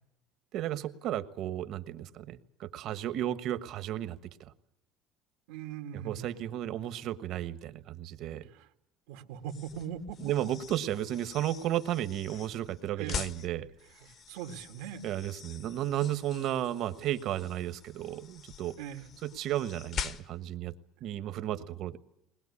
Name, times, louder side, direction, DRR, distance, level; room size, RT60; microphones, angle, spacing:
voice 1, 0.5-4.2 5.9-8.5 10.2-13.7 15.0-18.8 19.2-20.7 21.0-22.0, right 12 dB, 55° right, 11 dB, 1.3 m, -33 dB
voice 2, 5.5-6.4 8.5-8.7 9.1-10.3 13.0-13.3 14.0-15.0 18.8-19.1 21.0-21.1, right 9 dB, 90° right, 5 dB, 2.0 m, -41 dB
sound 1, 9.4-20.6, left 7 dB, 40° left, 1.1 m, -44 dB
21.0 x 20.0 x 9.7 m, 0.80 s
cardioid pair, 140°, 0 cm